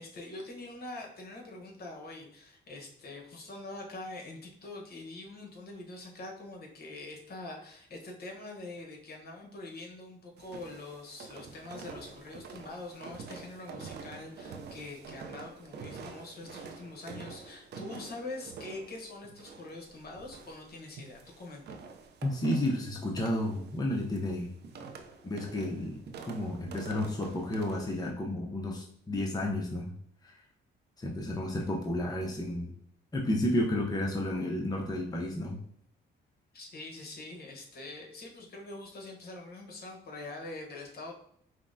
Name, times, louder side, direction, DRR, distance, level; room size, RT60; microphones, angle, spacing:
voice 1, 0.0-21.8 36.5-41.1, left 2 dB, 55° left, 0 dB, 1.1 m, -44 dB
sound 1, 10.4-28.1, right 4 dB, 60° right, 0.5 m, -47 dB
voice 2, 22.2-24.5 25.2-29.9 30.2-30.4 31.0-32.7 33.1-35.6, left 1 dB, 20° left, -1 dB, 0.7 m, -32 dB
5.6 x 2.1 x 2.7 m, 0.69 s
cardioid pair, 90°, 20 cm